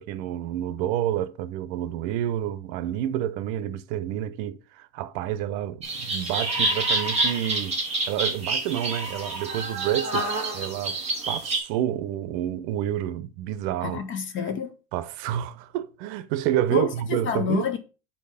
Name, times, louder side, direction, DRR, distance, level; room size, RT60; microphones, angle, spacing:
voice 1, 0.0-7.7 8.1-11.0 11.3-14.0 14.9-17.7, right 11 dB, 85° right, 0.9 m, -29 dB
sound 1, 5.8-11.6, right 2 dB, 15° right, 2.7 m, -27 dB
voice 2, 13.8-14.7 16.7-17.8, left 7 dB, 25° left, 0.4 m, -28 dB
5.6 x 4.6 x 5.6 m
cardioid pair, 165°, 50 cm